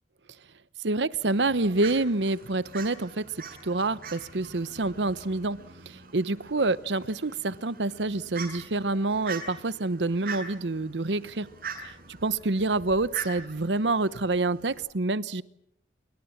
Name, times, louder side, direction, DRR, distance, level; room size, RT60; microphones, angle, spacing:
voice 1, 0.8-3.3 3.6-11.5 11.8-15.4, right 2 dB, 75° right, 1.0 m, -27 dB
Fowl, 1.2-14.8, right 5 dB, 55° right, 7.3 m, -43 dB
28.0 x 24.0 x 7.3 m
head